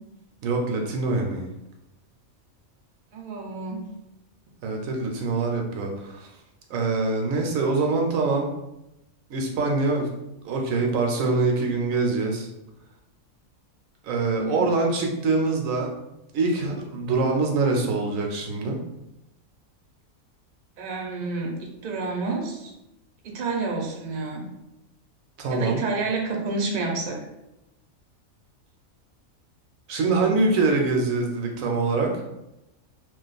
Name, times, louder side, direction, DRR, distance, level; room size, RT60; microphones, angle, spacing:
voice 1, 0.4-1.5 4.6-6.3 6.7-8.5 9.3-10.1 10.4-12.5 14.0-15.9 16.3-18.8 25.4-25.8 29.9-32.2, right 3 dB, 75° right, 1 dB, 1.0 m, -24 dB
voice 2, 3.1-3.9 14.3-14.7 20.8-22.7 23.2-24.4 25.5-27.2, right 3 dB, 45° right, -1 dB, 0.6 m, -29 dB
2.5 x 2.4 x 3.9 m, 0.90 s
omnidirectional pair, 1.5 m